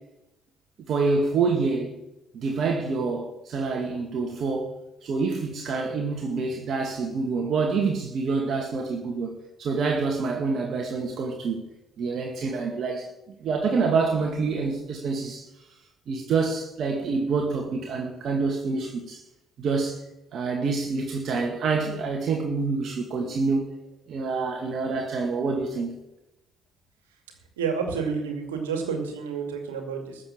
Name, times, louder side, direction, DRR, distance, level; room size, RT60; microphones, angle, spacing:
voice 1, 0.9-2.0 2.3-4.7 5.0-11.6 12.0-13.1 13.4-15.4 16.1-19.2 19.6-20.0 20.3-23.7 24.1-26.0, right 4 dB, 55° right, 1 dB, 2.2 m, -27 dB
voice 2, 27.6-30.2, right 5 dB, 90° right, 4 dB, 2.4 m, -29 dB
14.0 x 7.2 x 8.5 m, 0.91 s
hypercardioid pair, 55°, 0 cm